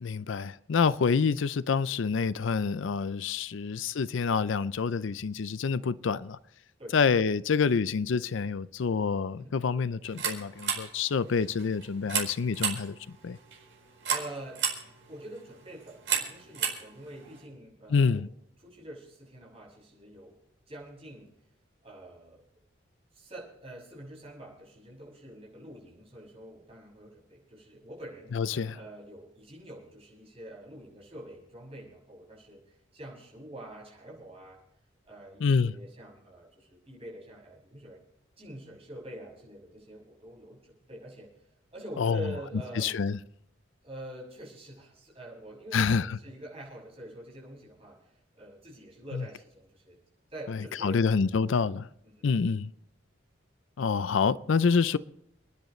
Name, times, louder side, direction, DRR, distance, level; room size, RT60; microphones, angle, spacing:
voice 1, 0.0-6.4 6.9-13.0 13.2-13.4 17.9-18.3 28.3-28.8 35.4-35.7 42.0-42.2 42.8-43.2 45.7-46.2 49.1-49.2 50.5-51.9 52.2-52.7 53.8-55.0, left 5 dB, 75° left, 0.5 m, -27 dB
sound 1, 10.0-17.5, right 7 dB, 70° right, 4.7 m, -35 dB
voice 2, 14.0-14.7 15.1-18.3 18.6-20.4 20.7-21.3 21.8-22.4 23.1-34.6 35.0-38.0 38.4-41.3 41.7-43.0 43.8-50.0 50.3-51.1 52.0-52.3, right 1 dB, 30° right, 6.8 m, -46 dB
29.5 x 10.5 x 3.2 m
head